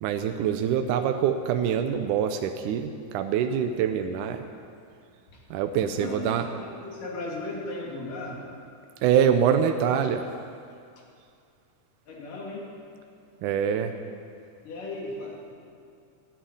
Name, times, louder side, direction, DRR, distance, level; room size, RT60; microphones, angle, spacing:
voice 1, 0.0-4.5 5.5-6.5 9.0-10.3 13.4-13.9, right 8 dB, 80° right, 6 dB, 2.1 m, -25 dB
voice 2, 5.8-8.4 11.0-11.1 12.1-12.7 14.6-15.5, left 2 dB, 80° left, -3 dB, 4.2 m, -36 dB
13.5 x 10.0 x 9.9 m, 2.4 s
omnidirectional pair, 3.7 m